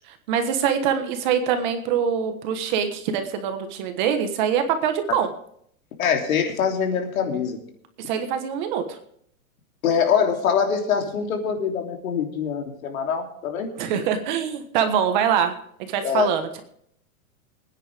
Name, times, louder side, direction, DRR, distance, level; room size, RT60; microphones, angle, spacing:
voice 1, 0.1-5.3 8.1-9.0 13.8-16.6, right 8 dB, 35° right, 7 dB, 1.4 m, -24 dB
voice 2, 6.0-7.6 9.8-13.7 16.0-16.3, left 7 dB, 70° left, 2 dB, 3.2 m, -24 dB
23.5 x 9.9 x 3.5 m, 0.67 s
supercardioid pair, 170°, 43 cm